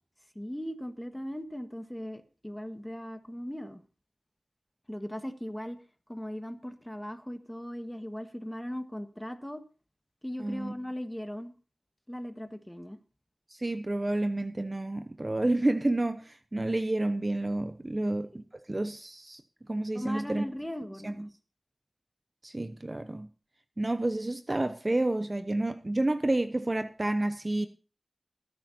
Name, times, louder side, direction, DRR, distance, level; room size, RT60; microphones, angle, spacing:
voice 1, 0.3-3.8 4.9-5.8 6.1-9.6 10.2-11.5 12.1-13.0 17.9-18.4 19.9-21.3, equal, 10° left, 1.5 m, -38 dB
voice 2, 10.4-10.7 13.5-19.4 19.7-20.4 21.0-21.3 22.4-23.3 23.8-27.7, right 2 dB, 30° right, 0.7 m, -30 dB
19.0 x 10.5 x 2.8 m
wide cardioid pair, 55°, 0 cm